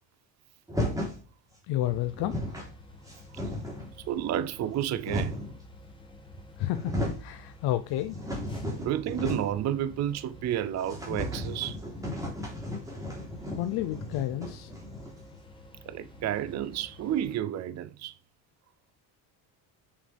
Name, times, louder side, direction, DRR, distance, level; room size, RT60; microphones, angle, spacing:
sound 1, 0.7-1.2 1.9-2.0 2.1-2.7 3.1-3.9 4.6-5.6 6.3-6.4 6.7-7.3 7.7-9.7 9.9-10.0 10.3-10.4 10.8-15.3, left 1 dB, 10° right, 3.5 m, -35 dB
voice 1, 1.7-2.4 6.6-8.2 13.5-14.7, left 13 dB, 65° left, 0.8 m, -31 dB
sound 2, 1.8-17.4, left 2 dB, 10° left, 2.2 m, -51 dB
voice 2, 4.1-5.5 8.8-11.8 15.9-18.2, right 11 dB, 40° right, 0.5 m, -31 dB
7.5 x 7.2 x 3.5 m
cardioid pair, 135°, 42 cm